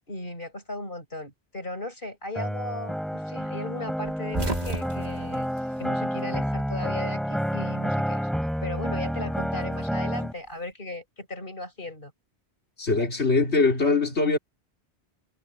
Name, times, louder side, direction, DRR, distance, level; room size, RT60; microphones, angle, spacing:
voice 1, 0.1-5.5 5.8-8.3 8.6-12.1 13.0-13.1, left 2 dB, 50° left, 6.7 m, -37 dB
sound 1, 2.4-10.3, equal, ahead, 5.1 m, -29 dB
sound 2, 4.0-6.6 6.8-7.9 9.1-10.6, right 3 dB, 40° right, 1.6 m, -36 dB
voice 2, 12.8-14.4, left 3 dB, 85° left, 3.2 m, -22 dB
omnidirectional pair, 1.1 m